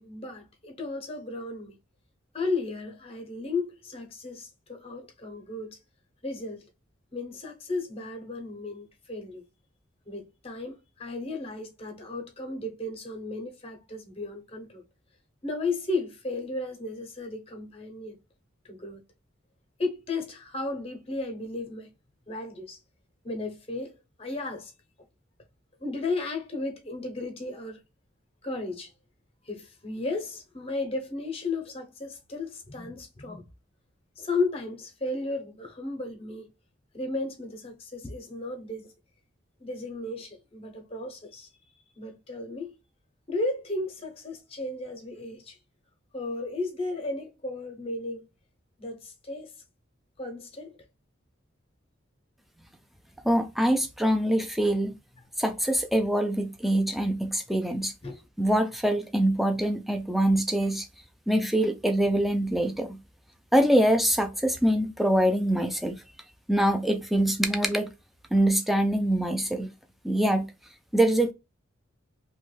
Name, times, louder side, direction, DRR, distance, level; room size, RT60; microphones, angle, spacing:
voice 1, 0.0-1.8 2.3-5.8 6.2-6.7 7.1-9.4 10.1-14.8 15.4-18.2 18.6-19.0 19.8-21.9 22.3-22.8 23.2-24.7 25.8-27.8 28.4-28.9 29.4-33.4 34.2-36.5 36.9-38.9 39.6-41.5 42.0-42.7 43.3-45.6 46.1-48.3 48.8-49.5 50.2-50.7 58.0-58.2, left 2 dB, 30° left, 0.8 m, -34 dB
voice 2, 53.2-55.0 55.4-57.9 58.4-60.9 61.3-63.0 63.5-65.9 66.5-67.9 68.3-69.7 70.0-70.5 70.9-71.3, right 1 dB, ahead, 0.4 m, -24 dB
3.1 x 2.2 x 3.2 m
head